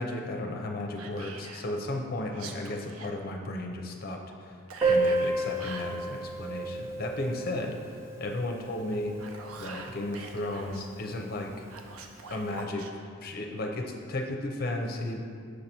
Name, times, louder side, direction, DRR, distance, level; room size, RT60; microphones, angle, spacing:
voice 1, 0.0-4.6 4.8-7.7 8.2-9.1 9.6-11.5 12.3-12.9 13.2-15.2, left 1 dB, 45° left, 2 dB, 0.5 m, -34 dB
Whispering, 1.0-1.7 2.3-3.1 4.7-5.9 9.0-10.8 11.7-12.9, right 4 dB, 90° right, 0.5 m, -44 dB
Piano, 4.8-10.2 10.4-10.5 10.7-10.9 11.2-11.3 12.1-12.2, right 2 dB, 15° right, 0.6 m, -31 dB
6.5 x 2.9 x 5.3 m, 2.2 s
head